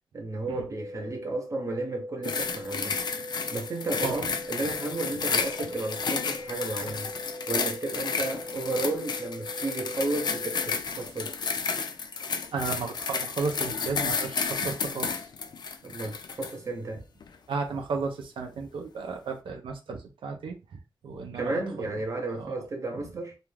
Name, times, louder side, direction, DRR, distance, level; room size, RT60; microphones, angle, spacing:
voice 1, 0.1-3.0 3.5-7.1 7.5-11.3 15.8-17.0 21.3-23.4, right 2 dB, 40° right, 0.6 m, -33 dB
sound 1, 0.8-10.8, left 1 dB, ahead, 0.8 m, -41 dB
sound 2, 2.2-16.6 17.2-17.4, left 5 dB, 55° left, 0.3 m, -32 dB
voice 2, 12.5-15.3 17.5-20.6 21.0-21.9 22.4-22.5, right 4 dB, 85° right, 0.5 m, -34 dB
2.3 x 2.2 x 3.2 m
wide cardioid pair, 160°, 9 cm